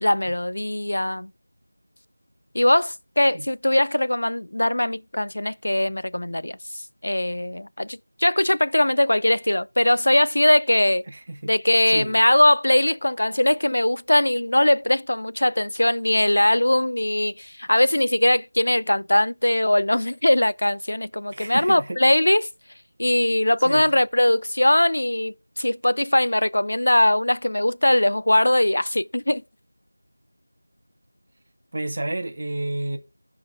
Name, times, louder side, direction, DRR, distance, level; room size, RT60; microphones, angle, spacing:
voice 1, 0.0-1.3 2.5-11.1 11.4-22.5 23.0-29.4, left 1 dB, 45° left, 0.4 m, -21 dB
voice 2, 11.1-11.5 11.9-12.2 21.3-22.0 23.6-23.9 31.7-33.0, right 1 dB, 20° right, 0.9 m, -30 dB
14.0 x 4.8 x 4.6 m
figure-of-eight pair, 180°, 0 cm